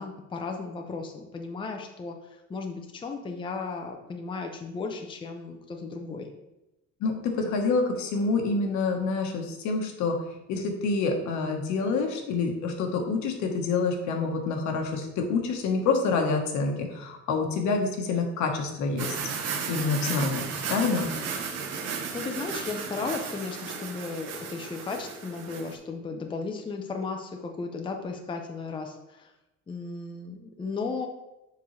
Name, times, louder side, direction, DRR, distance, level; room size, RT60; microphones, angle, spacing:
voice 1, 0.0-6.3 21.7-29.3 29.7-31.1, left 4 dB, 15° left, 3 dB, 0.6 m, -35 dB
voice 2, 7.0-10.2 10.5-19.2 19.7-20.4 20.7-21.1, left 4 dB, 70° left, 3 dB, 1.3 m, -27 dB
sound 1, 19.0-25.7, right 6 dB, 60° right, 1.0 m, -34 dB
7.0 x 5.3 x 3.2 m, 0.96 s
cardioid pair, 145°, 30 cm